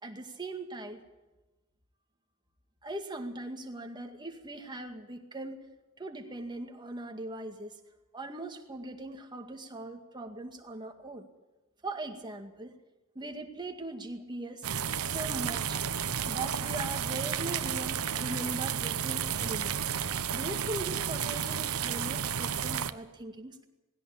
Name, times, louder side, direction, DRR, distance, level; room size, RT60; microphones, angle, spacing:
voice 1, 0.0-1.0 2.8-5.6 6.0-7.7 8.1-11.3 11.8-12.7 13.2-14.7 15.0-15.8 16.3-19.8 20.3-23.6, right 2 dB, 20° right, 4 dB, 2.1 m, -40 dB
sound 1, 14.6-22.9, right 8 dB, 85° right, 0.9 m, -32 dB
20.0 x 16.5 x 8.7 m, 1.1 s
head